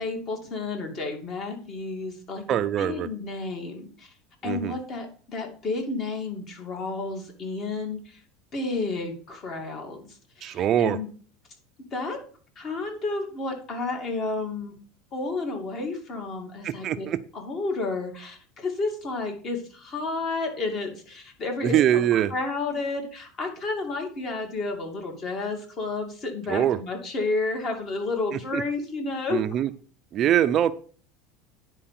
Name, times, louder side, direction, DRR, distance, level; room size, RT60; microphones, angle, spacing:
voice 1, 0.0-4.1 4.4-8.2 8.5-11.1 11.9-12.2 12.6-14.7 15.1-17.1 17.3-29.4, left 3 dB, 35° left, 3 dB, 2.5 m, -31 dB
voice 2, 2.5-3.1 4.4-4.7 10.4-11.0 16.6-17.2 21.6-22.3 26.5-26.8 28.5-28.6 29.3-29.7 30.1-30.7, right 11 dB, 40° right, 12 dB, 0.5 m, -23 dB
9.9 x 4.6 x 5.8 m, 0.42 s
supercardioid pair, 135°, 0 cm